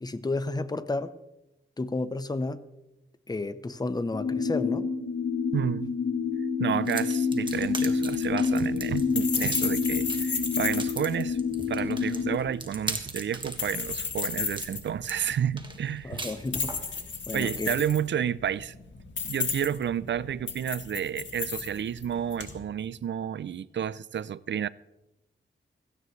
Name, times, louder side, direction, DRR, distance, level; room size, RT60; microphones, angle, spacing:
voice 1, 0.0-1.1 1.8-2.6 3.3-4.9 16.0-16.7 17.3-17.7, left 2 dB, 20° left, 0.8 m, -31 dB
sound 1, 4.1-12.4, left 5 dB, 55° left, 1.1 m, -28 dB
voice 2, 5.5-6.0 6.6-11.4 11.7-16.2 17.3-18.7 19.2-24.7, right 9 dB, 65° right, 0.5 m, -30 dB
sound 2, 6.8-16.9, right 2 dB, 25° right, 1.7 m, -39 dB
sound 3, 7.5-22.6, left 5 dB, 70° left, 2.0 m, -35 dB
17.0 x 16.0 x 3.2 m
wide cardioid pair, 90°, 20 cm